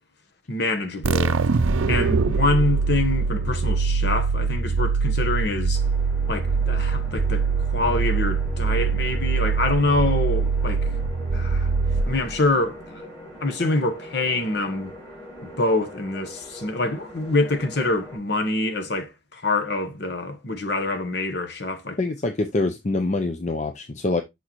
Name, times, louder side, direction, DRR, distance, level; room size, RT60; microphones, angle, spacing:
voice 1, 0.5-1.4 1.9-5.8 6.3-7.5 7.7-10.9 11.3-11.7 12.1-12.8 13.4-14.9 15.4-22.0, left 2 dB, 55° left, 1.1 m, -25 dB
sound 1, 1.0-12.5, right 4 dB, 80° right, 0.5 m, -23 dB
sound 2, 5.7-18.2, equal, 15° left, 3.8 m, -42 dB
voice 2, 22.0-24.2, left 2 dB, 35° left, 0.5 m, -25 dB
6.4 x 5.5 x 3.0 m
head